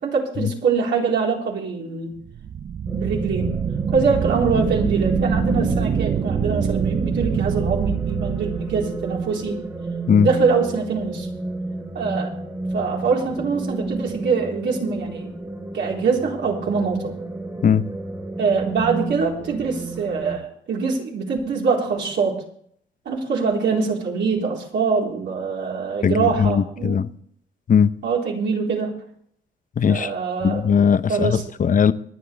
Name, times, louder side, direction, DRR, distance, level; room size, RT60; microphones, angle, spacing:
voice 1, 0.0-2.1 2.9-3.6 3.9-9.6 10.2-11.3 11.9-12.3 12.7-15.3 15.7-17.1 18.4-22.4 23.1-27.0 28.0-28.9 29.9-30.6 31.1-31.4, right 5 dB, 65° right, 4.3 m, -23 dB
sound 1, 2.3-9.3, right 8 dB, 40° right, 0.5 m, -25 dB
sound 2, 2.9-20.4, right 2 dB, 15° right, 2.1 m, -31 dB
voice 2, 26.0-27.1 27.7-27.9 29.8-30.1 30.4-31.9, left 7 dB, 40° left, 0.9 m, -18 dB
25.0 x 8.5 x 3.5 m
cardioid pair, 90°, 20 cm